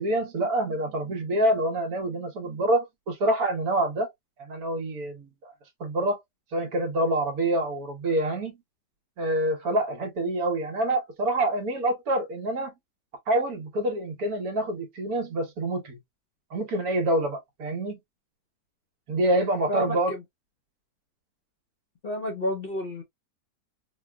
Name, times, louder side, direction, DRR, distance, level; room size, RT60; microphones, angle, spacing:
voice 1, 0.0-4.1 4.4-5.5 5.8-6.2 6.5-8.6 9.2-12.7 13.3-16.0 16.5-17.9 19.1-20.1, right 1 dB, 65° right, 1.4 m, -26 dB
voice 2, 19.7-20.2 22.0-23.0, equal, 50° left, 0.7 m, -30 dB
4.1 x 2.4 x 2.2 m
omnidirectional pair, 1.8 m